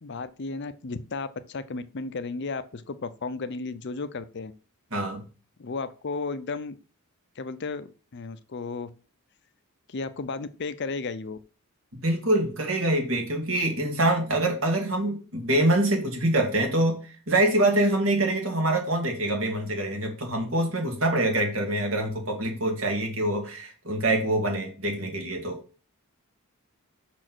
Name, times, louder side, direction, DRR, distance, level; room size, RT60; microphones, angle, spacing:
voice 1, 0.0-4.5 5.6-6.8 7.4-8.9 9.9-11.4, left 4 dB, 50° left, 13 dB, 0.6 m, -34 dB
voice 2, 4.9-5.2 12.0-17.0 17.3-25.6, right 1 dB, 60° right, 2 dB, 2.3 m, -25 dB
6.0 x 4.5 x 6.1 m, 0.37 s
head